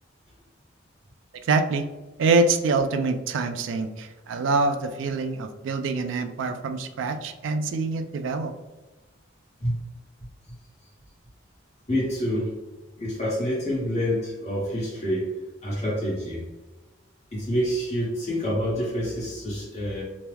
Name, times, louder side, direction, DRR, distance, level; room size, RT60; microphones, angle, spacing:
voice 1, 1.4-1.9 2.2-8.5, right 3 dB, 75° right, 8 dB, 0.3 m, -25 dB
voice 2, 11.9-12.6 13.0-15.3 15.6-16.4 17.3-20.0, equal, 35° left, -7 dB, 1.3 m, -27 dB
2.9 x 2.2 x 3.3 m, 1.1 s
head